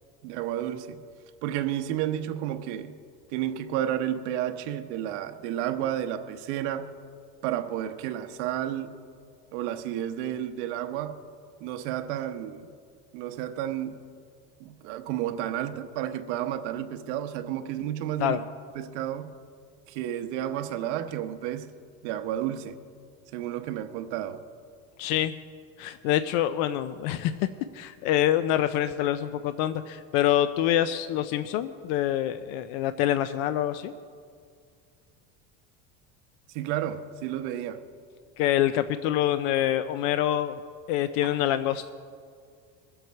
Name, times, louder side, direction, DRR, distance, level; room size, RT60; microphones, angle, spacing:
voice 1, 0.2-1.0 1.4-2.9 3.3-6.9 7.4-9.0 9.5-11.2 11.6-12.7 13.1-14.0 14.6-18.4 18.7-19.3 19.9-21.7 22.0-22.8 23.3-24.4 36.5-37.8, right 11 dB, 85° right, 7 dB, 1.0 m, -31 dB
voice 2, 25.0-25.3 25.8-27.3 27.7-33.9 38.4-40.6 40.9-41.9, left 12 dB, 70° left, 12 dB, 0.5 m, -26 dB
23.0 x 7.9 x 4.6 m, 2.2 s
cardioid pair, 165°, 33 cm